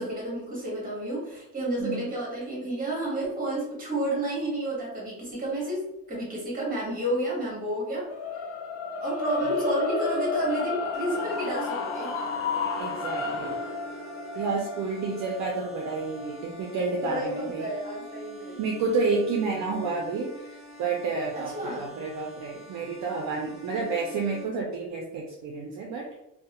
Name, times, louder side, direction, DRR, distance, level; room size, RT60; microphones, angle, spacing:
voice 1, 0.0-5.8 6.1-8.0 9.0-12.2 17.0-18.6 21.3-21.9, right 1 dB, 25° right, -4 dB, 1.2 m, -31 dB
sound 1, 8.1-18.3, left 4 dB, 45° left, 0.4 m, -32 dB
sound 2, 10.9-24.4, right 1 dB, ahead, 0.6 m, -46 dB
voice 2, 12.8-13.6 14.4-17.7 18.6-26.0, right 4 dB, 55° right, 0 dB, 0.5 m, -30 dB
2.4 x 2.1 x 2.8 m, 0.88 s
cardioid pair, 140°, 34 cm